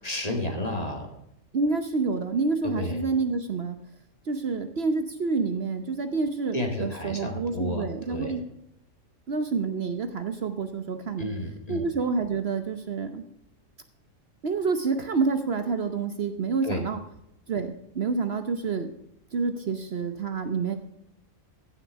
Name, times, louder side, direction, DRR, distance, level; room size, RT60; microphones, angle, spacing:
voice 1, 0.0-1.1 2.6-3.0 6.5-8.4 11.2-11.9 16.6-16.8, left 1 dB, 30° left, 3 dB, 2.1 m, -31 dB
voice 2, 1.5-3.8 4.3-8.4 9.3-11.3 11.7-13.2 14.4-17.0 17.5-18.9 19.3-20.7, right 4 dB, 55° right, 8 dB, 1.1 m, -28 dB
15.5 x 7.0 x 4.7 m, 0.80 s
omnidirectional pair, 1.4 m